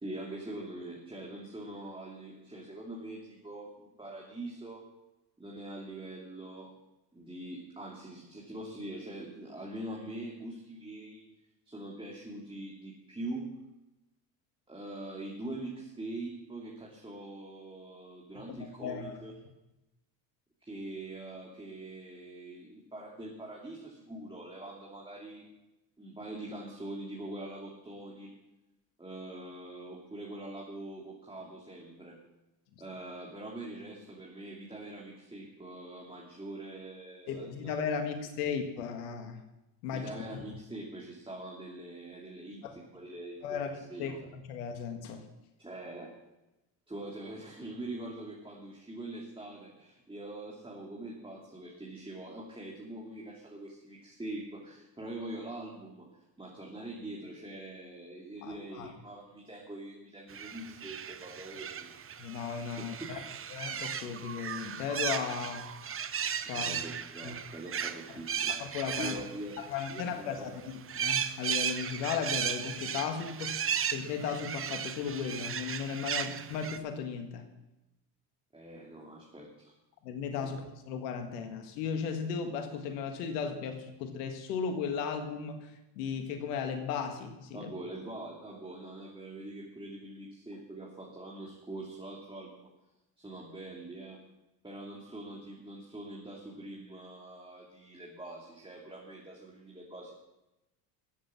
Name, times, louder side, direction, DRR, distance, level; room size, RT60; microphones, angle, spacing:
voice 1, 0.0-4.9 5.4-6.7 7.1-11.3 11.6-13.5 14.7-19.3 20.6-25.5 26.0-28.3 29.0-32.2 32.8-37.7 39.9-44.1 45.6-46.1 46.9-62.0 62.8-63.1 66.5-68.5 69.0-69.6 69.9-70.6 78.5-79.7 87.5-92.7 93.2-94.2 94.6-100.1, right 1 dB, 10° right, -3 dB, 2.8 m, -43 dB
voice 2, 18.5-19.1 37.3-39.4 39.8-40.2 42.6-42.8 43.4-45.3 58.4-58.9 62.2-63.2 63.5-65.6 66.5-66.8 67.2-67.3 68.6-69.2 69.6-73.6 73.9-77.4 80.0-87.7, left 6 dB, 85° left, 6 dB, 1.7 m, -36 dB
sound 1, 60.3-70.4 70.7-76.8, right 7 dB, 30° right, 0.9 m, -36 dB
14.0 x 7.8 x 7.3 m, 0.97 s
supercardioid pair, 80°, 47 cm